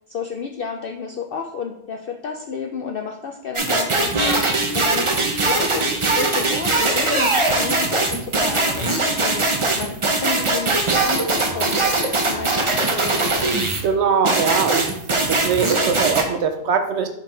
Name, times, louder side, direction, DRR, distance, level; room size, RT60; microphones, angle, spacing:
voice 1, 0.1-5.1 5.5-12.9, left 5 dB, 65° left, 3 dB, 0.5 m, -31 dB
sound 1, 3.5-13.8 14.2-16.2, right 2 dB, 30° right, 0.6 m, -21 dB
voice 2, 13.8-14.9 15.3-17.1, right 6 dB, 65° right, 7 dB, 0.7 m, -21 dB
5.6 x 4.8 x 3.8 m, 0.78 s
omnidirectional pair, 1.4 m